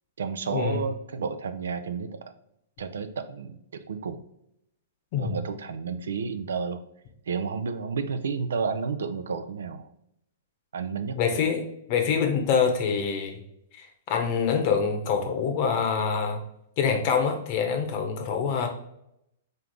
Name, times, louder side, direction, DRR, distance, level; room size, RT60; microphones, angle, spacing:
voice 1, 0.2-2.2 2.8-4.2 5.2-6.8 7.3-9.9 10.7-11.2, right 5 dB, 70° right, 10 dB, 0.4 m, -31 dB
voice 2, 11.1-11.6 11.9-13.4 13.7-16.4 16.8-18.7, left 6 dB, 45° left, 5 dB, 0.9 m, -25 dB
3.8 x 3.2 x 3.6 m, 0.78 s
hypercardioid pair, 110°, 0 cm